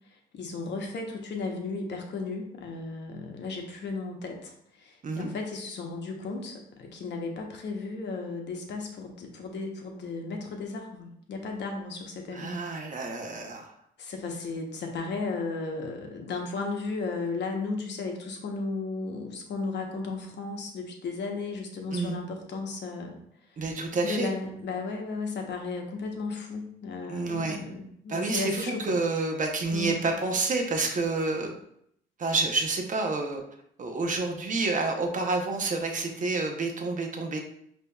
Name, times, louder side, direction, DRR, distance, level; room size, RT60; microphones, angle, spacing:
voice 1, 0.1-12.6 14.0-23.1 24.0-29.0 29.7-30.0, left 3 dB, 60° left, 2 dB, 0.9 m, -35 dB
voice 2, 12.3-13.7 21.9-22.2 23.6-24.3 27.1-27.6 28.1-31.5 32.2-33.4 33.8-37.4, right 3 dB, 40° right, 3 dB, 0.8 m, -29 dB
5.1 x 2.9 x 2.3 m, 0.72 s
cardioid pair, 90°, 20 cm